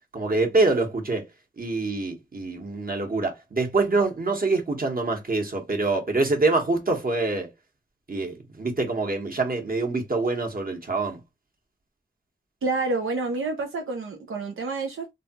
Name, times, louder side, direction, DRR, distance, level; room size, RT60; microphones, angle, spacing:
voice 1, 0.1-1.2 1.6-7.5 8.1-11.2, right 3 dB, 45° right, 1.1 m, -25 dB
voice 2, 12.6-15.1, right 3 dB, 85° right, 0.5 m, -28 dB
3.2 x 2.2 x 2.8 m
cardioid pair, 40°, 20 cm